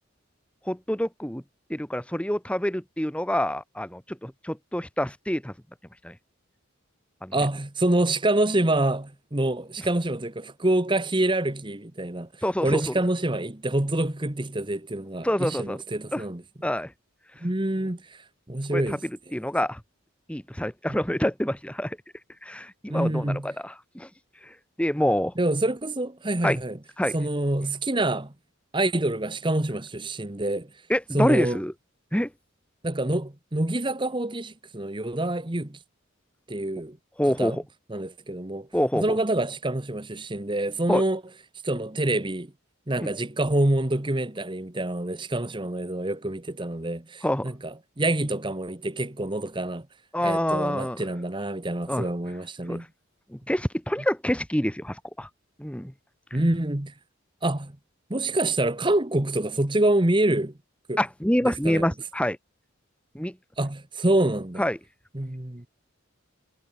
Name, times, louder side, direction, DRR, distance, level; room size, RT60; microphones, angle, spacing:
voice 1, 0.7-1.4 1.7-5.5 6.0-6.1 7.2-7.4 12.4-12.9 15.2-15.8 16.1-16.2 16.6-16.9 18.7-19.8 20.3-22.0 22.4-24.1 24.4-25.3 26.4-26.6 27.0-27.1 30.9-31.7 32.1-32.3 37.2-37.6 38.7-39.2 40.9-41.0 43.0-43.1 47.2-47.5 50.1-51.0 51.9-52.1 52.7-52.8 53.3-55.3 55.6-55.9 61.0-62.4 63.1-63.3 64.6-64.8, equal, 5° left, 1.7 m, -26 dB
voice 2, 7.3-12.3 12.6-16.4 17.4-18.0 18.5-19.0 20.9-21.0 22.9-23.5 25.4-26.8 27.1-28.3 28.7-30.7 31.1-31.6 32.8-35.8 36.5-37.0 37.4-37.6 37.9-38.7 38.9-41.2 41.6-42.5 42.9-49.9 50.2-52.9 56.3-56.9 57.4-57.7 58.1-60.5 60.9-61.0 61.4-61.9 63.6-64.6 65.1-65.7, right 1 dB, 25° right, 1.2 m, -26 dB
head